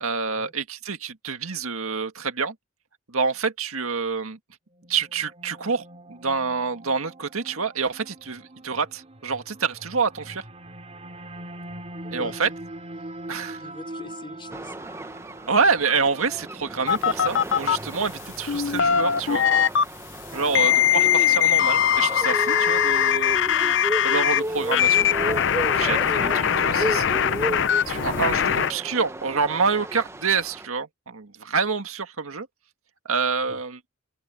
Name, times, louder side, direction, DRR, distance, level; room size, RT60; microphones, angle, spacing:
voice 1, 0.0-2.6 3.1-4.4 4.9-10.4 12.1-12.5 13.3-13.6 15.5-19.5 20.3-23.8 24.0-25.1 25.7-32.5 33.1-33.8, right 5 dB, 80° right, 1.8 m, -27 dB
sound 1, 4.7-20.1, right 1 dB, 30° right, 2.7 m, -43 dB
voice 2, 12.0-12.4 13.0-14.8 20.3-20.7 33.5-33.6, left 1 dB, 25° left, 5.1 m, -44 dB
sound 2, 14.5-30.7, right 1 dB, 10° right, 0.8 m, -33 dB
sound 3, 16.9-17.8 18.5-19.8 20.5-24.4 24.7-28.7, left 9 dB, 55° left, 0.6 m, -21 dB
open air
head